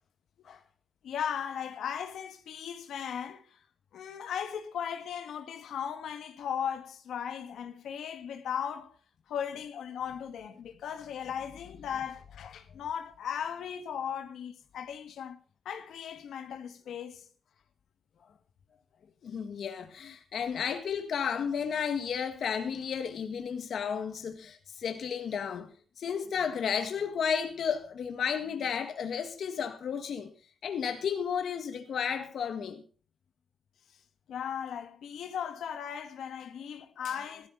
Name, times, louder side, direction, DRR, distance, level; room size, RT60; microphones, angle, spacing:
voice 1, 1.0-3.6 3.9-9.0 9.3-15.4 15.7-17.3 34.3-37.5, left 8 dB, 90° left, 2.0 m, -37 dB
voice 2, 19.2-25.7 26.0-30.3 30.6-32.8, left 7 dB, 70° left, 1.8 m, -33 dB
16.0 x 14.0 x 4.0 m
cardioid pair, 110°, 0 cm